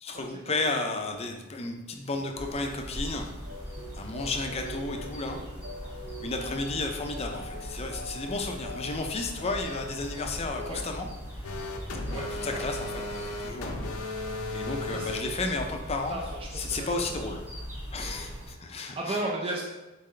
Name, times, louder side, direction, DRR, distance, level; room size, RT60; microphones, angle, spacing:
voice 1, 0.0-3.3 3.9-5.4 5.8-11.1 12.1-12.8 13.1-13.8 14.5-16.2 16.5-17.4 17.9-19.2, left 3 dB, 30° left, 3 dB, 0.5 m, -33 dB
sound 1, 2.3-18.5, equal, 10° right, 1.3 m, -40 dB
sound 2, 3.4-10.8, left 1 dB, 65° right, 0.7 m, -43 dB
sound 3, 11.4-15.2, left 2 dB, 90° left, 0.6 m, -35 dB
voice 2, 12.1-12.6 14.9-15.4 16.1-17.1 19.0-19.6, right 2 dB, 25° right, -1 dB, 0.4 m, -35 dB
4.1 x 3.8 x 3.2 m, 1.1 s
head